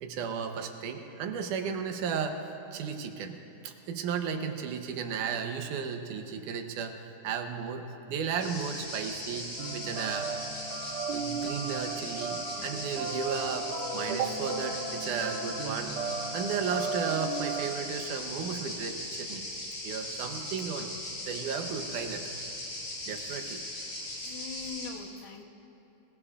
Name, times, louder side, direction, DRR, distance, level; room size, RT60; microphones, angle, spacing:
voice 1, 0.0-7.0 7.2-10.3 11.1-16.0 16.3-19.5 19.8-20.9 21.3-22.3 23.1-23.6, right 6 dB, 85° right, 5 dB, 2.5 m, -34 dB
sound 1, 8.4-24.9, left 1 dB, 65° left, 5.2 m, -39 dB
sound 2, 9.6-17.7, right 4 dB, 70° right, 2.2 m, -36 dB
voice 2, 24.2-25.4, left 5 dB, 85° left, 3 dB, 2.6 m, -41 dB
24.0 x 19.5 x 2.5 m, 2.9 s
omnidirectional pair, 3.5 m